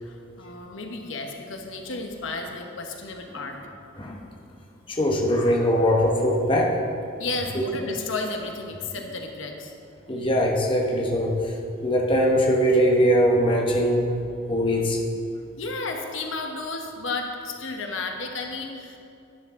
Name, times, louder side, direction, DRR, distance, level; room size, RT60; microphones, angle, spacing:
voice 1, 0.0-3.6 7.2-9.7 15.6-19.0, left 3 dB, 80° left, 3 dB, 1.1 m, -33 dB
voice 2, 4.9-6.8 7.5-7.6 10.1-11.6 11.8-14.1 14.5-15.0, equal, 25° left, -1 dB, 1.0 m, -21 dB
11.0 x 9.8 x 3.7 m, 2.5 s
head